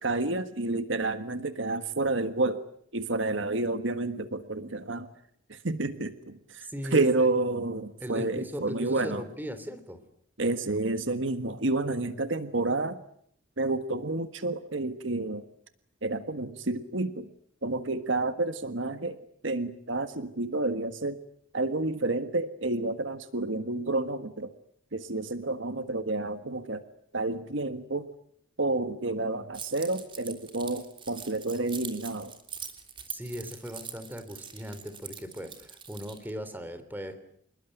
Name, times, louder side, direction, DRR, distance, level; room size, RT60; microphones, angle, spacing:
voice 1, 0.0-2.6 2.9-5.1 5.5-9.2 10.4-13.0 13.6-15.4 16.0-17.3 17.6-19.2 19.4-21.2 21.5-24.5 24.9-26.8 27.1-28.1 28.6-32.3, right 2 dB, 65° right, 10 dB, 1.6 m, -30 dB
voice 2, 6.6-7.1 8.0-10.0 33.1-37.2, equal, 10° right, 10 dB, 3.3 m, -38 dB
Keys jangling, 29.5-36.3, right 7 dB, 25° right, 3.3 m, -43 dB
27.5 x 21.5 x 9.2 m, 0.67 s
head